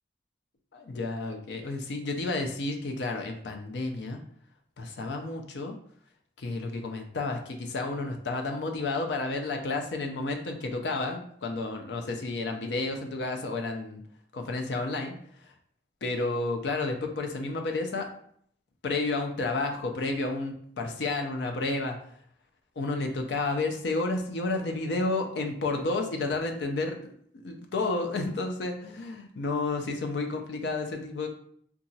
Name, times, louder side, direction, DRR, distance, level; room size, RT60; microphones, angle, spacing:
voice 1, 0.7-4.2 4.8-5.7 6.4-14.0 14.3-15.1 16.0-18.1 18.8-22.0 22.8-27.1 27.4-31.3, left 3 dB, 80° left, 4 dB, 0.5 m, -31 dB
2.8 x 2.3 x 2.7 m, 0.64 s
head